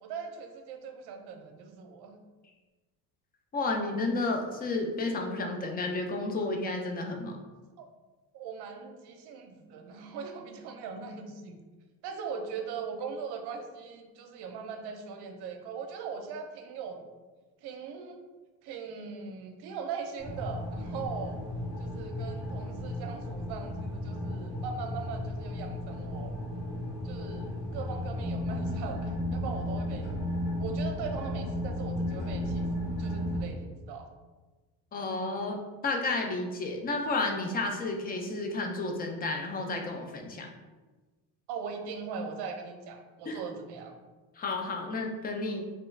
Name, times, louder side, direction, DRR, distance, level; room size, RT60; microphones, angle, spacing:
voice 1, 0.0-2.2 7.8-7.9 8.3-11.6 12.0-17.0 17.6-18.2 18.6-21.4 21.8-26.4 27.0-30.1 30.6-32.7 33.0-34.1 41.5-43.9, right 5 dB, 65° right, 4 dB, 0.6 m, -40 dB
voice 2, 3.5-7.4 34.9-40.5 43.3-43.4 44.4-45.6, left 2 dB, 25° left, 2 dB, 0.3 m, -32 dB
sound 1, 20.2-33.4, left 1 dB, 75° left, 1.5 m, -34 dB
3.0 x 2.3 x 3.1 m, 1.2 s
cardioid pair, 120°, 42 cm